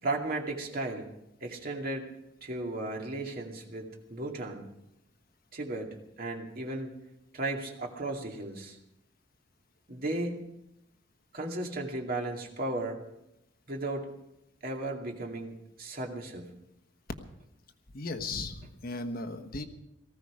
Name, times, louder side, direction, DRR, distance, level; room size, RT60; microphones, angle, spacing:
voice 1, 0.0-2.1 2.4-4.7 5.5-6.9 7.3-8.8 9.9-10.4 11.3-13.0 13.7-14.1 14.6-16.5, right 2 dB, 50° right, 1 dB, 2.4 m, -35 dB
voice 2, 17.9-19.6, left 3 dB, 50° left, 7 dB, 1.3 m, -36 dB
18.5 x 15.0 x 5.0 m, 0.84 s
head